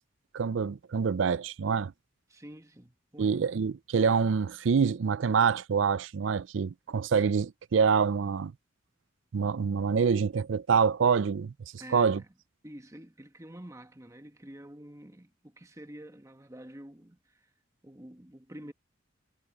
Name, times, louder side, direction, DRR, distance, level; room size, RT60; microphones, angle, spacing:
voice 1, 0.3-1.9 3.2-8.5 9.3-11.5 11.9-12.2, right 6 dB, 75° right, 0.4 m, -26 dB
voice 2, 2.3-3.4 11.8-12.3 12.6-17.5 17.8-18.7, right 1 dB, 15° right, 1.4 m, -48 dB
head